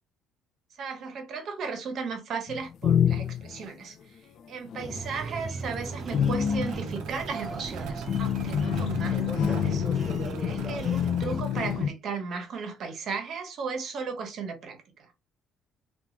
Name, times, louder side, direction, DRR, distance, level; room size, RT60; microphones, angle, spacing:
voice 1, 0.8-4.2 4.5-9.9 10.4-15.1, right 5 dB, 50° right, 0.8 m, -35 dB
sound 1, 2.5-3.7 4.7-5.0 5.4-11.9, left 8 dB, 60° left, 0.3 m, -27 dB
sound 2, 4.8-11.4, right 4 dB, 30° right, 0.3 m, -38 dB
sound 3, 5.6-11.7, right 6 dB, 85° right, 0.5 m, -44 dB
2.9 x 2.3 x 2.5 m
cardioid pair, 135°, 0 cm